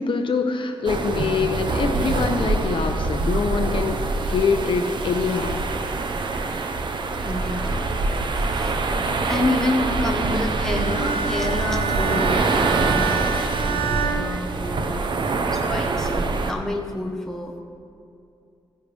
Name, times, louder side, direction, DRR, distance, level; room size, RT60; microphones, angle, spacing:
voice 1, 0.0-5.6 12.1-12.2, left 5 dB, 60° left, 5 dB, 0.7 m, -24 dB
sound 1, 0.9-16.5, right 3 dB, 55° right, 0.7 m, -25 dB
voice 2, 7.2-8.8 9.3-12.4 12.7-13.2 13.6-17.6, left 1 dB, 5° left, 0 dB, 1.2 m, -28 dB
Bowed string instrument, 10.6-15.1, right 6 dB, 80° right, 0.9 m, -28 dB
14.5 x 10.0 x 3.4 m, 2.5 s
wide cardioid pair, 165°, 10 cm